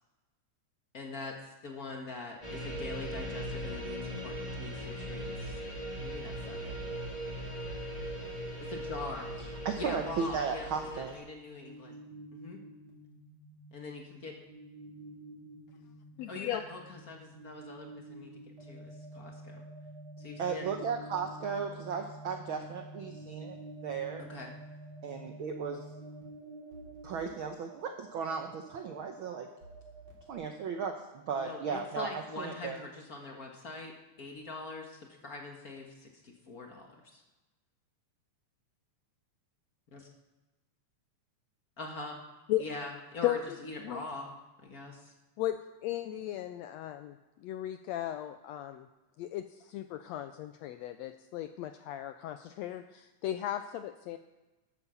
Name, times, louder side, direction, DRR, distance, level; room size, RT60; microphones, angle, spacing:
voice 1, 0.9-5.6 6.0-6.8 8.6-9.4 9.8-10.7 10.9-12.0 12.3-12.6 13.7-14.3 16.3-18.3 18.6-19.6 20.2-20.7 24.3-24.5 31.4-37.2 39.9-40.1 41.8-42.2 42.6-44.3 44.6-45.1, left 3 dB, 40° left, 2 dB, 1.3 m, -43 dB
sound 1, 2.4-11.2, equal, 15° left, 2.7 m, -39 dB
voice 2, 9.6-11.2 20.4-24.3 25.0-25.8 27.0-29.5 30.3-32.8, right 6 dB, 75° right, 5 dB, 1.2 m, -36 dB
sound 2, 11.2-30.3, right 1 dB, 40° right, 3.7 m, -49 dB
voice 3, 16.2-16.6 42.5-42.7 43.2-44.0 45.4-48.9 49.2-54.2, left 12 dB, 80° left, 10 dB, 1.5 m, -36 dB
12.5 x 8.4 x 7.0 m, 1.1 s
omnidirectional pair, 3.5 m